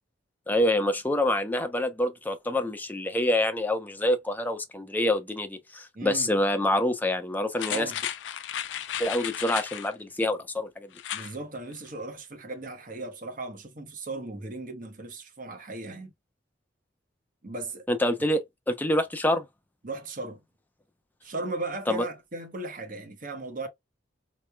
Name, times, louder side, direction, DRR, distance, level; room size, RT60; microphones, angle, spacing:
voice 1, 0.5-7.9 9.0-10.9 17.9-19.5 21.9-22.1, left 1 dB, 10° left, 0.6 m, -26 dB
voice 2, 5.9-6.3 7.7-8.0 11.1-16.1 17.4-17.8 19.8-20.4 21.2-23.7, right 2 dB, 50° right, 1.1 m, -37 dB
sound 1, 7.6-9.9 10.9-11.3 11.7-11.8, left 10 dB, 75° left, 0.4 m, -34 dB
4.1 x 3.1 x 2.2 m
head